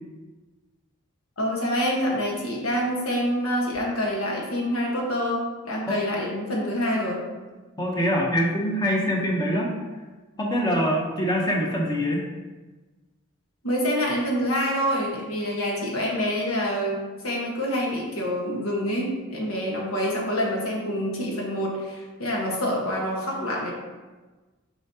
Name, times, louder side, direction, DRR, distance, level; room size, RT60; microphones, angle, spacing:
voice 1, 1.4-7.2 13.6-23.7, equal, 80° left, -2 dB, 1.4 m, -26 dB
voice 2, 7.8-9.7 10.4-12.2, equal, 20° left, -2 dB, 0.9 m, -24 dB
7.1 x 4.8 x 2.8 m, 1.2 s
head